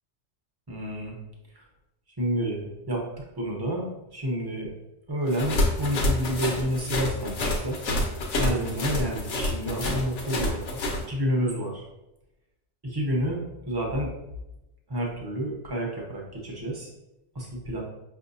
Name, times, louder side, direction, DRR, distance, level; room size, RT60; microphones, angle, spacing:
voice 1, 0.7-1.2 1.5-1.6 2.2-3.0 3.4-3.9 4.1-4.7 5.1-7.8 8.4-10.8 11.1-11.8 12.8-14.1 14.9-16.9 17.3-17.8, equal, 25° right, -1 dB, 0.8 m, -29 dB
sound 1, 5.3-11.0, left 1 dB, 85° left, 1.1 m, -27 dB
5.5 x 2.6 x 2.6 m, 0.91 s
omnidirectional pair, 1.2 m